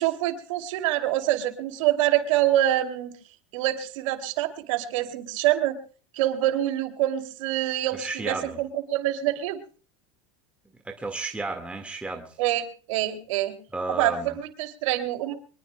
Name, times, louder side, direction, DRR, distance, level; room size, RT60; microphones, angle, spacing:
voice 1, 0.0-3.1 3.5-5.8 6.1-9.6 12.4-12.6 12.9-13.6 13.9-15.3, right 13 dB, 75° right, 7 dB, 2.7 m, -25 dB
voice 2, 7.9-8.6 10.8-12.4 13.7-14.3, right 3 dB, 5° right, 3 dB, 1.6 m, -33 dB
24.0 x 21.0 x 2.2 m, 0.38 s
supercardioid pair, 125°, 16 cm